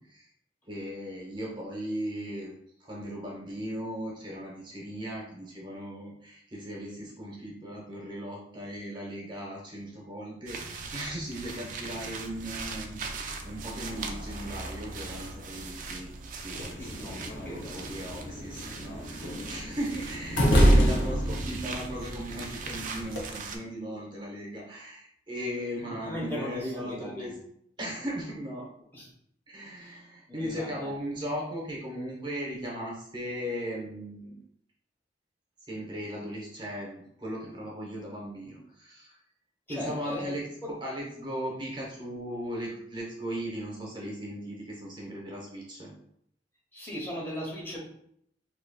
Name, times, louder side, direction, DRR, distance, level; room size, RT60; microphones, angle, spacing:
voice 1, 0.7-2.5 2.8-16.1 16.4-27.3 27.8-28.7 29.5-34.4 35.6-39.2 39.7-45.9, equal, 25° right, -3 dB, 0.9 m, -37 dB
sound 1, 10.5-23.6, right 4 dB, 50° right, 0.5 m, -40 dB
sound 2, 16.5-23.2, equal, 85° left, 0.8 m, -27 dB
voice 2, 16.8-17.7 25.8-27.4 28.9-29.1 29.8-30.0 30.3-30.9 39.7-40.3 40.6-40.7 46.7-47.8, left 1 dB, 15° left, -4 dB, 1.0 m, -38 dB
5.0 x 2.9 x 2.3 m, 0.71 s
head